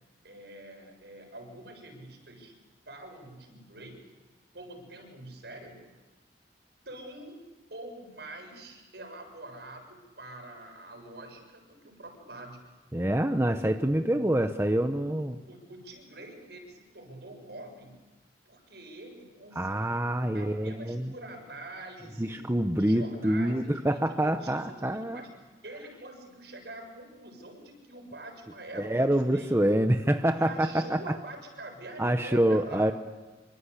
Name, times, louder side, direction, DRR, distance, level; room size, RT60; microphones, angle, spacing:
voice 1, 0.2-2.5 2.9-4.0 4.5-5.9 6.9-7.4 7.7-12.7 14.1-14.3 15.1-18.0 18.5-22.5 22.8-25.3 25.6-29.6 30.4-32.9, right 2 dB, 70° right, 3 dB, 7.0 m, -45 dB
voice 2, 12.9-15.4 19.5-21.1 22.2-25.2 28.7-31.0 32.0-32.9, right 1 dB, 15° right, 6 dB, 1.0 m, -26 dB
27.5 x 25.5 x 8.4 m, 1.2 s
head